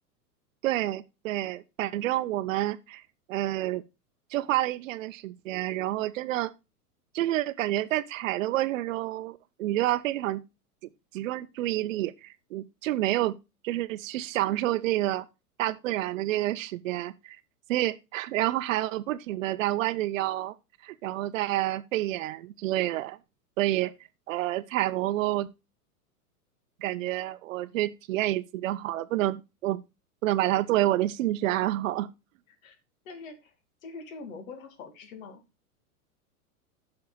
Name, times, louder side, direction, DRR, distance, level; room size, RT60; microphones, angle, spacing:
voice 1, 0.6-3.0 3.3-3.8 4.3-6.5 7.1-10.4 11.1-13.3 13.6-15.3 15.6-17.4 17.7-20.5 20.8-23.2 23.6-23.9 24.3-25.5 26.8-29.8 30.2-32.1, right 15 dB, 55° right, 0.8 m, -28 dB
voice 2, 33.1-33.5 33.8-35.4, left 4 dB, 60° left, 2.2 m, -43 dB
15.5 x 5.7 x 2.2 m
hypercardioid pair, 105°, 46 cm